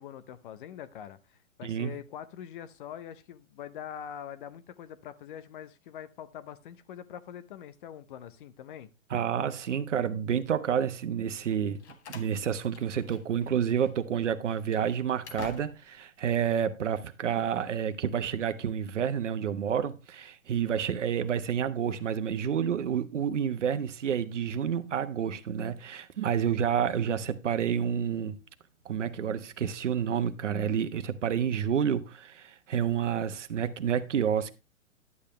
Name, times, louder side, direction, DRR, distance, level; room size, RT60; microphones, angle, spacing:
voice 1, 0.0-8.9, left 9 dB, 40° left, 0.8 m, -44 dB
voice 2, 1.6-1.9 9.1-11.8 12.1-28.4 28.8-34.5, right 8 dB, 65° right, 1.2 m, -29 dB
Slam, 11.5-13.5 13.8-13.9 14.5-16.0, left 5 dB, 55° left, 1.8 m, -47 dB
11.0 x 8.4 x 3.2 m
figure-of-eight pair, 120°, 40 cm